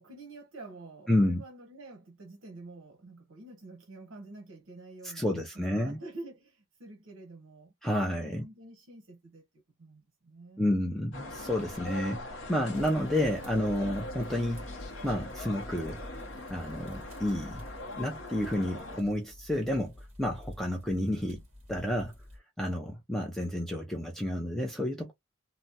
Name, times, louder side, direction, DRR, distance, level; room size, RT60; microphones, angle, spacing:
voice 1, 0.0-7.7 8.2-10.6, right 2 dB, 65° right, 0.8 m, -48 dB
voice 2, 1.1-1.4 5.0-6.0 7.8-8.4 10.6-12.2 12.5-14.6 15.0-16.0 16.5-17.6 18.0-19.9 20.2-21.4 21.7-22.1 22.6-25.1, left 1 dB, ahead, 0.4 m, -30 dB
sound 1, 11.1-19.0, left 1 dB, 60° left, 0.6 m, -41 dB
sound 2, 12.7-22.4, left 1 dB, 30° right, 1.5 m, -49 dB
3.1 x 2.0 x 2.7 m
head